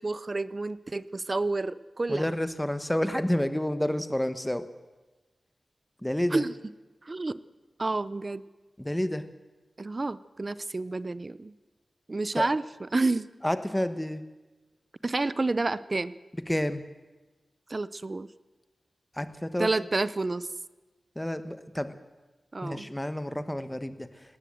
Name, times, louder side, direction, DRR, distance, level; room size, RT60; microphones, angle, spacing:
voice 1, 0.0-2.3 6.3-6.5 7.1-7.4 7.8-8.4 9.8-11.5 12.1-13.3 15.0-16.1 17.7-18.3 19.6-20.5 22.5-22.9, right 2 dB, 35° right, 17 dB, 0.6 m, -29 dB
voice 2, 2.1-4.6 6.0-6.4 8.8-9.2 12.4-12.5 13.4-14.2 16.5-16.8 19.2-19.7 21.1-21.9 22.6-24.1, left 1 dB, 10° left, 11 dB, 1.3 m, -29 dB
19.0 x 18.0 x 7.8 m, 1.2 s
wide cardioid pair, 90°, 0 cm